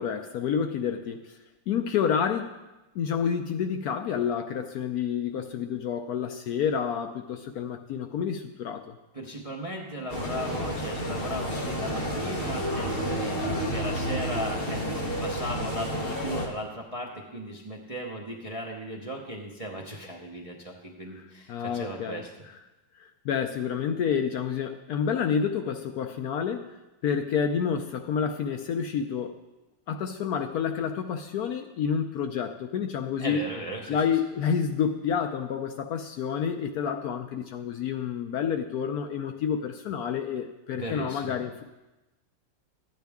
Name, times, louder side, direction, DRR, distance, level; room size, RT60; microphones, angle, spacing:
voice 1, 0.0-1.4 1.7-2.6 2.9-9.0 21.1-21.2 21.5-22.2 23.0-26.8 27.0-29.4 29.9-33.5 33.9-41.6, left 7 dB, 70° left, 6 dB, 1.0 m, -29 dB
voice 2, 9.1-22.3 33.2-34.0 40.7-41.4, right 1 dB, 30° right, -1 dB, 0.6 m, -36 dB
sound 1, 10.1-16.5, equal, 35° left, 1.1 m, -31 dB
sound 2, 10.1-15.6, right 1 dB, 10° left, 4.2 m, -40 dB
12.5 x 9.1 x 3.5 m, 1.0 s
omnidirectional pair, 1.9 m